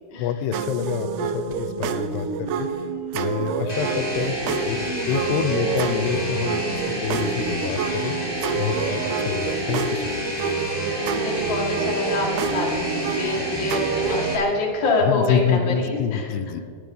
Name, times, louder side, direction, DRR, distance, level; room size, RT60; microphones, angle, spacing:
voice 1, 0.2-2.7 3.1-4.8 5.1-8.2 8.5-10.5 15.0-16.6, left 8 dB, 90° left, 12 dB, 2.7 m, -27 dB
sound 1, 0.5-14.4, right 6 dB, 80° right, 2.7 m, -28 dB
sound 2, 3.7-14.3, left 1 dB, 10° left, 2.0 m, -29 dB
voice 2, 11.1-16.3, left 3 dB, 35° left, -2 dB, 2.3 m, -26 dB
19.0 x 6.9 x 5.4 m, 2.2 s
omnidirectional pair, 4.6 m